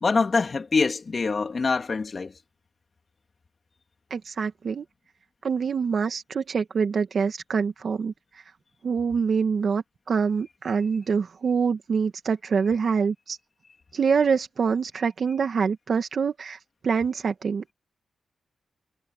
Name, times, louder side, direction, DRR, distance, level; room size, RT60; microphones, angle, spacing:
voice 1, 0.0-2.3, left 4 dB, 50° left, 3.0 m, -24 dB
voice 2, 4.1-4.8 5.4-8.4 8.8-13.4 13.9-16.6 16.8-17.7, right 6 dB, 65° right, 1.8 m, -25 dB
cardioid pair, 65°, 0 cm